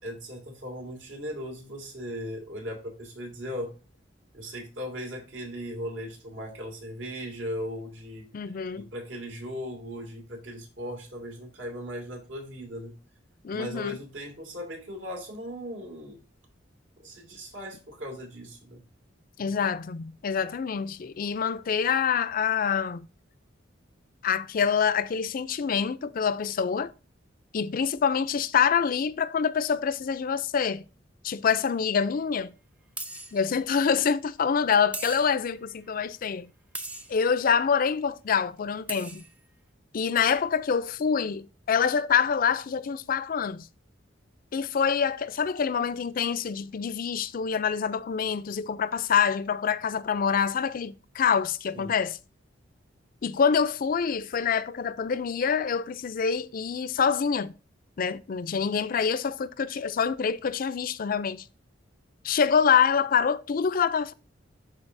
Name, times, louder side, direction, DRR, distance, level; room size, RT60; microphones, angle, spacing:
voice 1, 0.0-3.8 4.3-8.3 8.7-12.9 13.5-16.2 17.0-18.8 51.7-51.9, equal, 75° right, 2.3 m, -38 dB
voice 2, 8.3-8.9 13.4-14.0 19.4-23.1 24.2-26.9 27.5-30.8 31.2-32.5 33.3-36.5 37.1-39.2 39.9-43.7 44.5-52.2 53.2-57.5 58.0-61.4 62.2-64.1, left 6 dB, 50° left, 0.4 m, -26 dB
sound 1, 31.7-31.8 33.0-33.4 34.9-35.5 36.7-37.2 38.6-38.7 38.9-39.3, right 1 dB, 5° right, 0.6 m, -38 dB
11.5 x 4.0 x 2.6 m
head